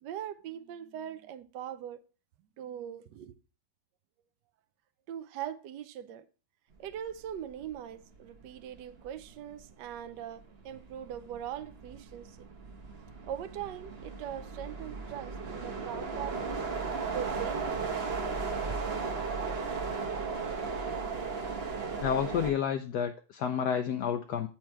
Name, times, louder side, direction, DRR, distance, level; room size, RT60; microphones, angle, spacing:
voice 1, 0.0-2.0 2.6-3.4 5.1-6.3 6.8-12.5 13.2-16.7 17.1-18.1, right 10 dB, 70° right, 1.2 m, -41 dB
sound 1, 7.5-7.7 8.1-22.5, right 4 dB, 40° right, 1.0 m, -36 dB
voice 2, 22.0-24.5, left 8 dB, 70° left, 1.0 m, -30 dB
8.6 x 4.4 x 4.5 m
omnidirectional pair, 2.1 m